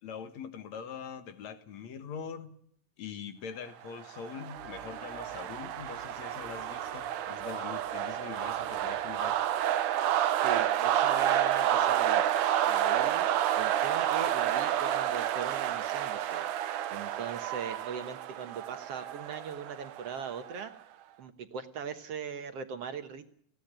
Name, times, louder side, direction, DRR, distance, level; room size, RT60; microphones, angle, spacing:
voice 1, 0.0-2.6 3.0-9.4, left 6 dB, 65° left, 9 dB, 2.6 m, -43 dB
sound 1, 4.0-20.6, right 11 dB, 85° right, 2.5 m, -30 dB
sound 2, 4.5-11.1, left 2 dB, 85° left, 7.1 m, -57 dB
voice 2, 10.4-12.2 12.7-16.4 16.9-20.7 21.2-23.3, right 6 dB, 60° right, 8 dB, 2.0 m, -39 dB
20.0 x 16.0 x 8.9 m, 0.67 s
omnidirectional pair, 3.5 m